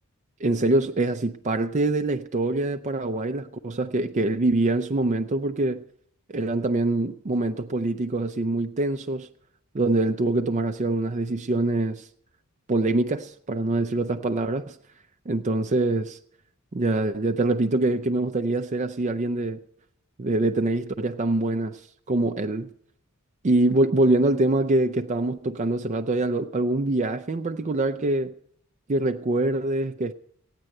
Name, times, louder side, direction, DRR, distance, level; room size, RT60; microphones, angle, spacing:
voice 1, 0.4-5.8 6.3-9.3 9.7-12.1 12.7-14.8 15.3-16.2 16.7-19.6 20.2-21.8 22.1-22.7 23.4-28.3 28.9-30.1, right 2 dB, 35° right, 0.5 m, -24 dB
15.0 x 9.9 x 7.7 m
head